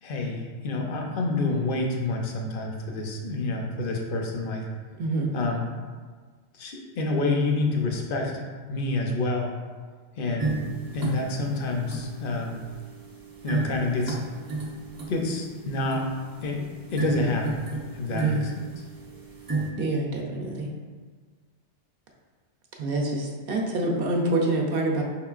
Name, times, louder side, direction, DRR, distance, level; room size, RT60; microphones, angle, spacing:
voice 1, 0.0-4.7 5.3-5.7 6.5-9.5 10.2-10.6 10.9-12.6 13.4-14.2 15.1-16.1 16.4-17.6 17.9-18.8, left 2 dB, 55° left, 1 dB, 0.7 m, -28 dB
voice 2, 5.0-5.3 18.1-18.4 19.8-20.7 22.8-25.0, right 2 dB, 60° right, 0 dB, 0.7 m, -26 dB
sound 1, 10.4-19.7, right 3 dB, 35° right, 0.3 m, -33 dB
5.1 x 3.7 x 2.4 m, 1.5 s
omnidirectional pair, 1.2 m